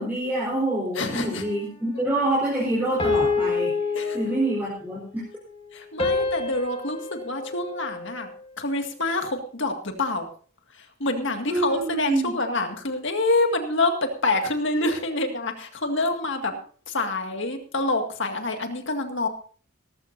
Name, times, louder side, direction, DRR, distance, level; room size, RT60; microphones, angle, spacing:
voice 1, 0.0-5.2 11.5-12.3, right 1 dB, 10° right, -6 dB, 4.1 m, -26 dB
voice 2, 1.0-1.4 3.9-4.2 5.7-8.3 8.6-9.7 10.0-10.3 11.0-16.5 16.9-19.3, left 2 dB, 60° left, 5 dB, 2.0 m, -26 dB
sound 1, 1.1-1.8 3.0-4.8 6.0-8.4, left 4 dB, 25° left, 1.7 m, -28 dB
18.0 x 14.5 x 2.7 m, 0.43 s
head